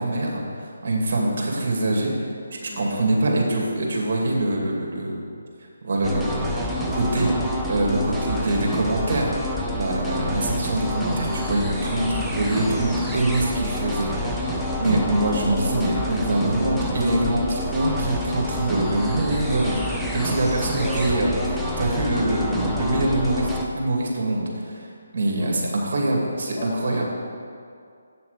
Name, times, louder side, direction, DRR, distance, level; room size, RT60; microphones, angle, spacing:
voice 1, 0.0-2.3 2.6-5.2 5.8-6.4 6.8-9.3 9.7-14.5 14.8-21.3 21.8-24.9 25.1-27.1, right 1 dB, 55° right, -1 dB, 2.4 m, -24 dB
voice 2, 2.7-3.0 14.5-14.8 15.4-15.9 20.7-21.1 25.4-25.6 26.6-27.2, left 1 dB, 30° left, -4 dB, 1.7 m, -35 dB
sound 1, 6.0-23.7, left 1 dB, ahead, 0.7 m, -28 dB
8.4 x 7.0 x 6.7 m, 2.3 s
figure-of-eight pair, 155°, 0 cm